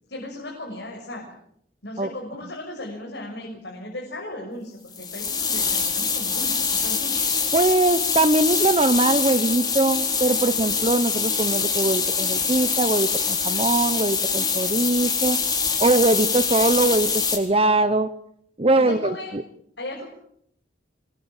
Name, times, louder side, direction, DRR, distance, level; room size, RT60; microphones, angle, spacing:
voice 1, 0.1-1.3 1.8-7.4 13.5-13.7 18.7-19.3 19.8-20.0, left 1 dB, 75° left, -1 dB, 6.3 m, -36 dB
sound 1, 4.9-17.4, left 5 dB, 20° left, 4.3 m, -24 dB
voice 2, 7.5-15.4 15.8-18.1 18.6-19.4, right 2 dB, 30° right, 11 dB, 1.0 m, -21 dB
25.5 x 22.0 x 7.3 m, 0.70 s
head